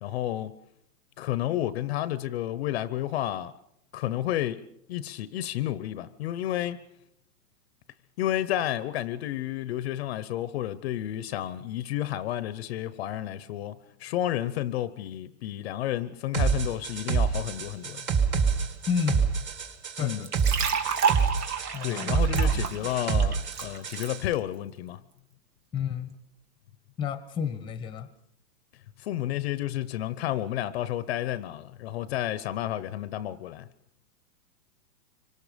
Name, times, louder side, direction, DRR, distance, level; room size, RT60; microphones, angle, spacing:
voice 1, 0.0-0.5 1.2-3.5 3.9-6.8 8.2-18.1 20.0-20.2 21.8-25.0 29.0-33.7, left 13 dB, 40° left, 1.0 m, -31 dB
sound 1, 16.3-24.2, right 6 dB, 25° right, 2.2 m, -27 dB
voice 2, 18.9-19.3 20.0-20.3 21.7-22.1 22.4-22.9 25.7-26.1 27.0-28.1, left 7 dB, 10° left, 1.2 m, -31 dB
sound 2, 20.2-24.1, right 6 dB, 75° right, 3.6 m, -30 dB
26.0 x 24.5 x 5.2 m
hypercardioid pair, 150°, 46 cm